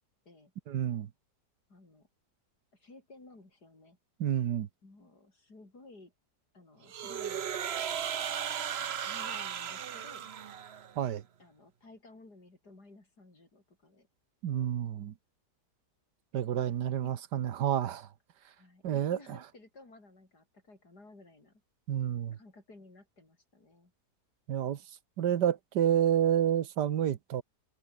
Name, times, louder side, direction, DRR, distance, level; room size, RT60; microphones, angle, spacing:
voice 1, 0.7-1.1 4.2-4.7 11.0-11.2 14.4-15.1 16.3-18.1 18.8-19.4 21.9-22.4 24.5-24.8 25.2-27.4, right 10 dB, 80° right, 1.7 m, -29 dB
voice 2, 1.7-2.1 2.7-4.0 4.8-6.1 6.5-7.5 8.8-10.3 11.4-14.1 16.5-17.1 18.6-21.6 22.3-23.9, left 2 dB, 70° left, 6.4 m, -56 dB
sound 1, 6.9-10.9, right 8 dB, 50° right, 0.9 m, -36 dB
omnidirectional pair, 1.8 m